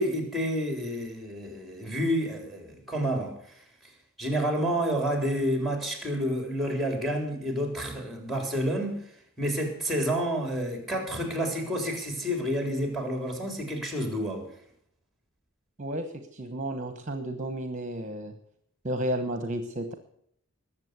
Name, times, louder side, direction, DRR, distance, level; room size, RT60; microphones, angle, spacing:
voice 1, 0.0-3.3 4.2-9.0 9.4-14.5, equal, ahead, 4 dB, 3.7 m, -29 dB
voice 2, 15.8-18.3 18.8-19.9, right 1 dB, 35° right, 8 dB, 1.1 m, -32 dB
20.5 x 7.5 x 8.1 m, 0.69 s
head